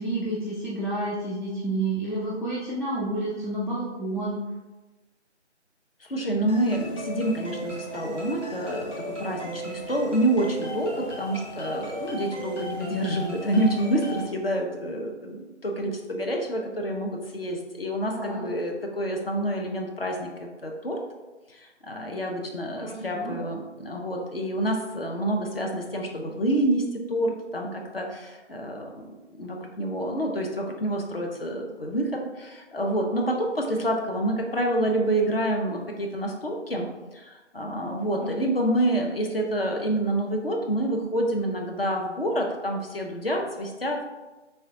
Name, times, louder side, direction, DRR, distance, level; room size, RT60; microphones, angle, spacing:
voice 1, 0.0-4.4 18.1-18.4 22.8-23.4 38.0-38.3, right 2 dB, ahead, -7 dB, 0.4 m, -30 dB
voice 2, 6.0-21.0 21.5-36.9 37.1-44.1, right 1 dB, 55° left, 1 dB, 0.6 m, -28 dB
sound 1, 6.5-14.3, equal, 70° left, 1.4 m, -36 dB
3.5 x 3.3 x 2.7 m, 1.1 s
figure-of-eight pair, 160°, 36 cm